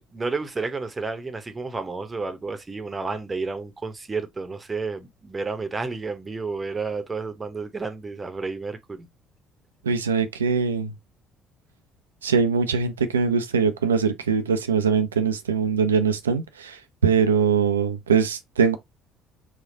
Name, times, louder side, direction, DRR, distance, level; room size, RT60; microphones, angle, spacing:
voice 1, 0.1-9.1, right 4 dB, 25° right, 0.9 m, -31 dB
voice 2, 9.8-10.9 12.2-18.8, right 6 dB, 85° right, 0.5 m, -22 dB
4.3 x 2.3 x 3.7 m
hypercardioid pair, 55°, 0 cm